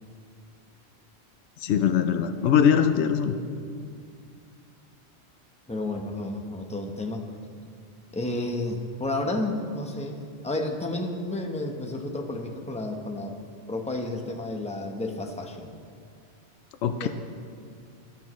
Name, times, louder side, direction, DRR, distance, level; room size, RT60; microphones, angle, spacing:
voice 1, 1.6-3.3 16.8-17.1, left 8 dB, 80° left, 7 dB, 0.9 m, -22 dB
voice 2, 5.7-7.3 8.1-13.4 13.7-15.7 16.9-17.1, left 2 dB, 5° left, 3 dB, 0.8 m, -31 dB
18.0 x 11.5 x 3.1 m, 2.3 s
omnidirectional pair, 1.1 m